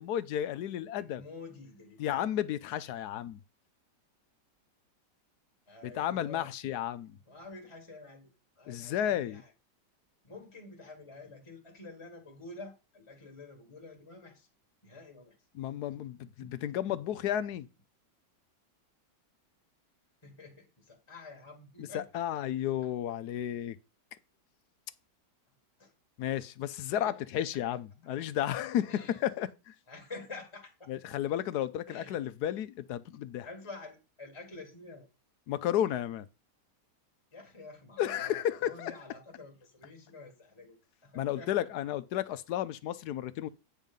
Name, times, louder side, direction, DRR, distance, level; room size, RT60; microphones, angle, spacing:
voice 1, 0.0-1.2 2.0-3.4 5.8-7.1 8.7-9.4 15.6-17.7 21.9-23.8 26.2-29.7 30.9-33.5 35.5-36.3 38.0-38.9 41.1-43.5, left 11 dB, 70° left, 1.2 m, -33 dB
voice 2, 1.0-2.2 5.7-6.5 7.3-9.5 10.2-14.5 14.8-15.4 16.4-16.5 20.2-22.2 22.8-22.9 25.5-25.9 26.9-27.2 27.5-27.6 28.9-29.3 29.9-31.2 31.9-32.2 33.4-35.1 37.3-41.6, left 3 dB, 20° left, 1.7 m, -49 dB
9.1 x 4.7 x 5.3 m
omnidirectional pair, 1.8 m